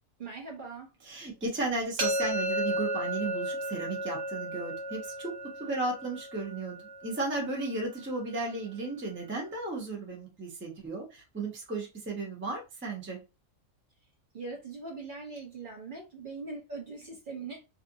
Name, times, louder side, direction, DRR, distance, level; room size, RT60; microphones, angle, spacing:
voice 1, 0.2-0.9 14.3-17.6, right 3 dB, 50° right, -1 dB, 0.7 m, -41 dB
voice 2, 1.1-5.3 5.6-6.8 7.0-13.2, right 2 dB, 15° right, 0 dB, 0.5 m, -34 dB
sound 1, 2.0-7.8, right 1 dB, 70° right, 1.6 m, -34 dB
2.6 x 2.4 x 2.6 m, 0.27 s
omnidirectional pair, 1.3 m